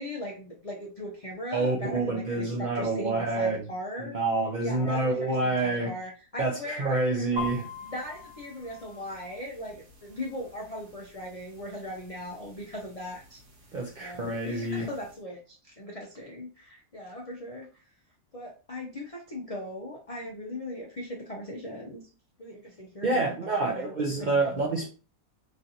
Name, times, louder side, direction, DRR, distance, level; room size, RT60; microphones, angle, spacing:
voice 1, 0.0-4.2 4.6-7.4 7.8-13.4 14.0-17.7 18.3-22.0 22.4-23.3 23.6-23.9 24.2-24.6, left 1 dB, 70° left, 0.3 m, -39 dB
voice 2, 1.5-3.7 4.0-5.9 6.4-7.7 13.7-14.9 23.0-24.9, right 2 dB, 70° right, 0.4 m, -27 dB
sound 1, 7.4-15.2, left 3 dB, 90° right, 1.4 m, -44 dB
3.1 x 2.5 x 2.7 m
omnidirectional pair, 1.5 m